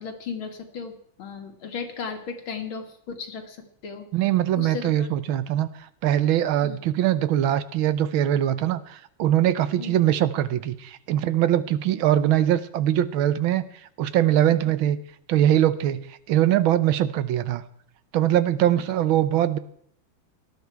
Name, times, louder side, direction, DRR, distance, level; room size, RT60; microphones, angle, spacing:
voice 1, 0.0-3.6 3.8-4.1 4.6-5.1 6.6-6.8 9.8-10.0, left 5 dB, 85° left, 4 dB, 2.6 m, -35 dB
voice 2, 4.1-13.6 14.0-15.0 15.3-17.6 18.1-19.6, right 12 dB, 85° right, 14 dB, 1.6 m, -22 dB
18.0 x 12.0 x 4.6 m, 0.67 s
omnidirectional pair, 2.2 m